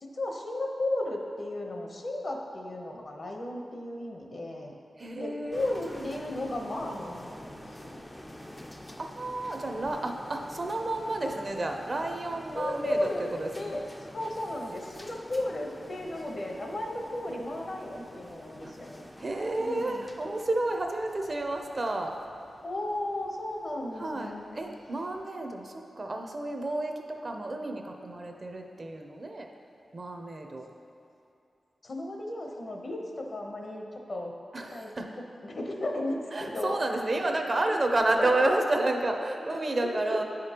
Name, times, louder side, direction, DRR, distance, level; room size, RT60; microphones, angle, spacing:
voice 1, 0.0-4.7 5.2-8.0 12.5-13.2 13.6-19.1 19.6-20.1 22.6-24.6 31.8-34.3 34.7-34.9 35.4-36.8 37.6-37.8 38.2-38.5 40.1-40.2, left 1 dB, 45° left, 1 dB, 0.8 m, -34 dB
voice 2, 5.0-6.1 9.0-13.8 18.6-18.7 19.2-22.2 23.9-29.5 29.9-30.7 34.5-35.1 36.3-40.2, right 2 dB, 40° right, 3 dB, 0.5 m, -31 dB
sound 1, 5.5-25.2, left 1 dB, 10° left, 0.4 m, -48 dB
9.6 x 5.1 x 2.9 m, 2.7 s
wide cardioid pair, 105°, 0 cm